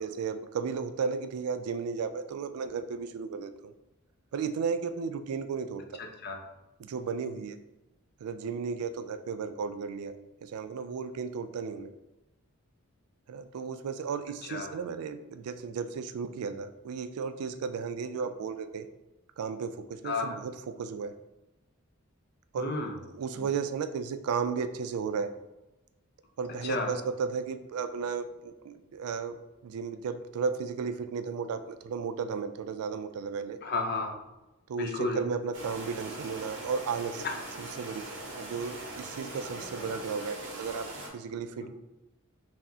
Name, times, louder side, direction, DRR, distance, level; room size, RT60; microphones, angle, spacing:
voice 1, 0.0-3.7 4.3-6.0 6.8-7.6 8.2-10.1 10.4-11.9 13.3-18.9 19.4-21.1 22.5-22.7 23.2-25.3 26.4-29.4 29.6-33.6 34.7-37.3 37.6-40.9 41.1-41.7, right 5 dB, 90° right, 10 dB, 0.3 m, -34 dB
voice 2, 6.0-6.4 14.5-14.7 20.0-20.4 22.6-22.9 23.3-23.5 26.6-26.9 33.6-34.1 34.8-35.2 37.2-37.4 41.6-41.7, left 3 dB, 45° left, 2 dB, 0.6 m, -32 dB
sound 1, 35.5-41.1, right 2 dB, 60° right, 1.0 m, -41 dB
5.8 x 2.1 x 2.7 m, 1.0 s
head